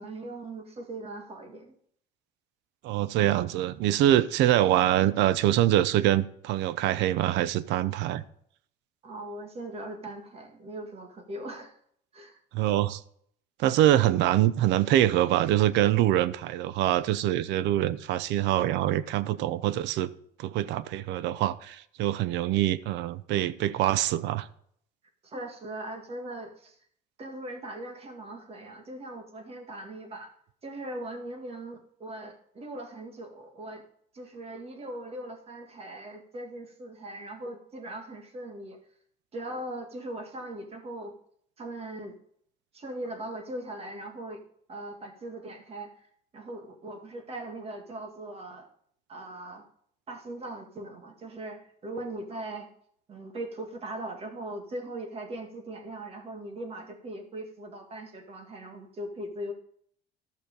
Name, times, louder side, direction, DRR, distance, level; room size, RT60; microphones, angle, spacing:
voice 1, 0.0-1.8 9.0-11.8 12.1-12.4 25.2-26.8 27.2-30.3 30.6-33.8 34.1-38.8 39.3-41.1 41.6-42.1 42.7-44.4 44.7-46.1 46.3-48.7 49.1-49.6 50.1-52.7 53.1-59.5, right 1 dB, 35° right, 2.0 m, -40 dB
voice 2, 2.8-8.2 12.5-13.0 13.6-20.1 20.4-24.5, right 13 dB, 75° right, 0.6 m, -24 dB
12.0 x 6.4 x 5.2 m
cardioid pair, 135°, 18 cm